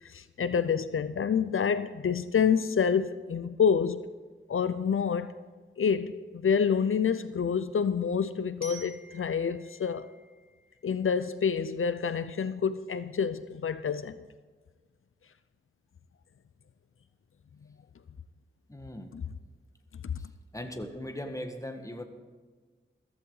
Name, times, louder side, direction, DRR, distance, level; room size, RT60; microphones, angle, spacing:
voice 1, 0.0-4.0 4.5-5.3 5.8-10.1 10.8-14.2 19.1-19.2 20.0-20.2, left 6 dB, 85° left, 0.5 m, -28 dB
Glockenspiel, 8.6-11.5, right 1 dB, 50° right, 3.5 m, -51 dB
voice 2, 18.7-19.1 20.2-20.3 20.5-22.0, left 1 dB, 15° left, 1.5 m, -39 dB
14.5 x 14.5 x 3.9 m
wide cardioid pair, 50°, 21 cm